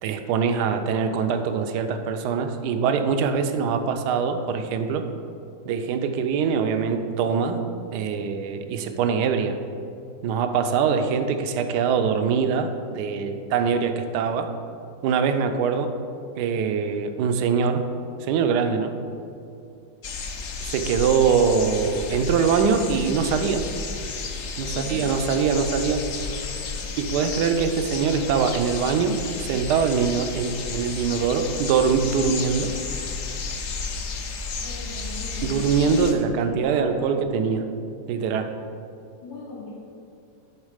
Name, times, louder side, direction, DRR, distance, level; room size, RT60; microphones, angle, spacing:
voice 1, 0.0-5.0 5.7-7.6 7.9-9.6 10.2-14.5 15.0-15.9 16.4-17.8 18.2-18.9 20.6-23.6 24.6-26.0 27.0-32.7 35.4-37.7 38.1-38.5, right 6 dB, 75° right, 7 dB, 1.2 m, -23 dB
sound 1, 20.0-36.1, left 4 dB, 55° left, 0.8 m, -32 dB
voice 2, 24.6-25.1 34.6-35.5 35.8-36.0 36.3-37.1 39.2-39.8, left 2 dB, 85° left, -10 dB, 2.3 m, -39 dB
10.5 x 4.0 x 4.9 m, 2.6 s
omnidirectional pair, 1.9 m